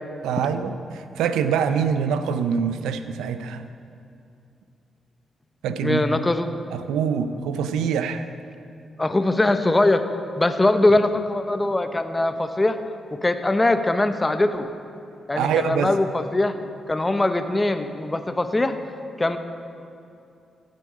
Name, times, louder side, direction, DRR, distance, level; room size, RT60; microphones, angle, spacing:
voice 1, 0.2-3.6 5.6-6.0 6.7-8.3 15.3-15.9, right 7 dB, 90° right, 10 dB, 0.5 m, -25 dB
voice 2, 5.8-6.5 9.0-10.0 10.4-12.8 13.1-14.7 15.3-16.5 16.9-18.7 19.2-19.4, left 2 dB, 20° left, 8 dB, 0.9 m, -21 dB
15.5 x 7.6 x 4.9 m, 2.6 s
supercardioid pair, 55°, 0 cm